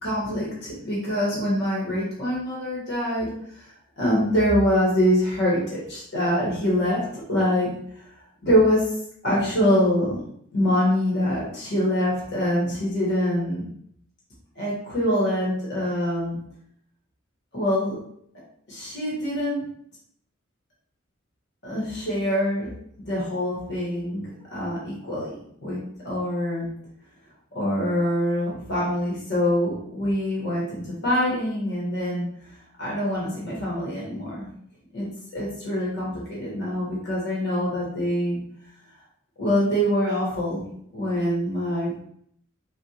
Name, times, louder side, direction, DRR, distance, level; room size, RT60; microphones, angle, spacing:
voice 1, 0.0-7.0 7.3-7.7 8.0-8.1 8.4-8.9 9.2-10.2 10.5-13.6 14.5-16.4 17.5-17.9 18.7-19.6 21.6-22.7 23.0-24.2 24.5-25.3 25.6-26.7 27.5-32.2 32.8-34.5 34.9-35.1 35.3-38.4 39.4-40.7 40.9-42.0, equal, 60° left, -6 dB, 1.2 m, -24 dB
3.6 x 2.4 x 2.8 m, 0.67 s
head